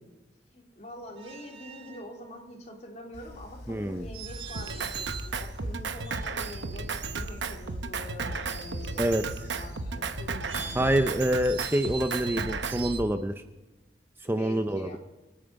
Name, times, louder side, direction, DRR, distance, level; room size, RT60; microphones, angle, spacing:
voice 1, 0.5-11.0 14.3-15.0, equal, 40° left, 0 dB, 3.5 m, -45 dB
sound 1, 1.2-2.1 4.1-5.4 5.9-6.7 10.2-13.0, right 6 dB, 35° right, 1.8 m, -42 dB
Train, 3.1-13.1, left 1 dB, 70° left, 3.6 m, -42 dB
voice 2, 3.7-4.1 9.0-9.2 10.7-13.4 14.2-15.0, right 1 dB, 15° right, 8 dB, 0.6 m, -26 dB
Drum kit, 4.5-12.9, right 4 dB, 75° right, 0.9 m, -34 dB
26.0 x 9.0 x 5.3 m, 1.1 s
head